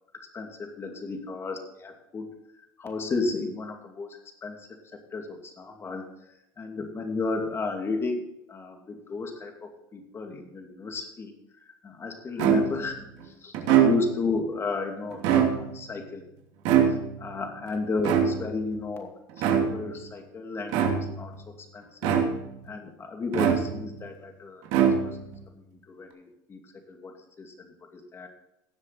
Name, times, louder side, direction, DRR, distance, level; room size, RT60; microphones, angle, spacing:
voice 1, 0.1-2.4 2.8-6.1 6.6-8.2 8.5-11.3 11.8-13.0 13.2-16.2 17.2-19.1 19.4-21.3 21.7-22.2 22.6-24.6 25.0-25.2 25.5-28.3, left 3 dB, 25° left, 4 dB, 2.6 m, -33 dB
sound 1, 12.4-12.9 13.5-14.3 15.1-15.9 16.6-17.3 18.0-18.7 19.4-19.9 20.7-21.3 22.0-22.6 23.3-24.0 24.7-25.4, right 8 dB, 65° right, 2.7 m, -23 dB
18.0 x 7.3 x 4.3 m, 0.84 s
supercardioid pair, 125°, 10 cm